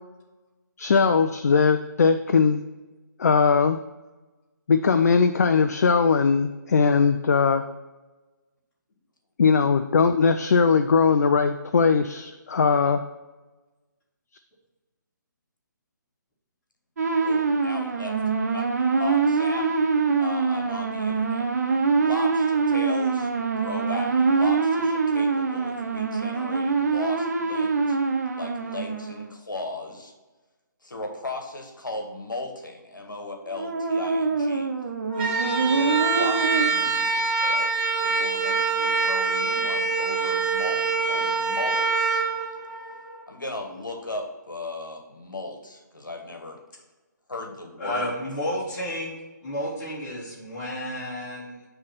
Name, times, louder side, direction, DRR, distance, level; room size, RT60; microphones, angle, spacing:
voice 1, 0.8-2.6 3.2-3.8 4.7-7.6 9.4-13.0, left 5 dB, 55° left, 9 dB, 0.4 m, -20 dB
sound 1, 17.0-29.3 33.5-36.7, right 4 dB, 55° right, 0.7 m, -24 dB
voice 2, 17.2-18.2 18.5-18.7 19.0-19.7 20.2-21.5 22.0-23.3 23.6-28.0 28.3-30.1 30.8-34.7 35.1-37.7 38.0-42.3 43.3-46.6 47.3-48.6, left 2 dB, 75° left, 3 dB, 1.2 m, -37 dB
sound 2, 35.1-43.2, right 4 dB, 30° right, 2.2 m, -25 dB
voice 3, 47.8-49.2 49.4-51.7, equal, 15° left, -7 dB, 2.2 m, -31 dB
7.3 x 3.3 x 5.7 m, 1.2 s
figure-of-eight pair, 140°, 10 cm